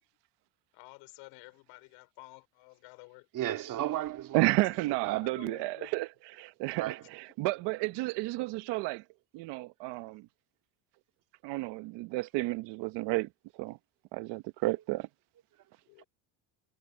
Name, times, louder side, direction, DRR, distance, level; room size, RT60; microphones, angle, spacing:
voice 1, 0.7-3.6 5.2-6.1 15.8-16.0, left 25 dB, 75° left, 5.3 m, -52 dB
voice 2, 3.3-4.6 5.0-5.2 6.8-7.0 16.0-16.1, right 13 dB, 45° right, 2.5 m, -34 dB
voice 3, 4.3-6.1 6.4-9.0 9.3-10.3 11.4-13.3 13.6-13.8 14.1-15.1, right 21 dB, 65° right, 1.3 m, -31 dB
cardioid pair, 130°, 45 cm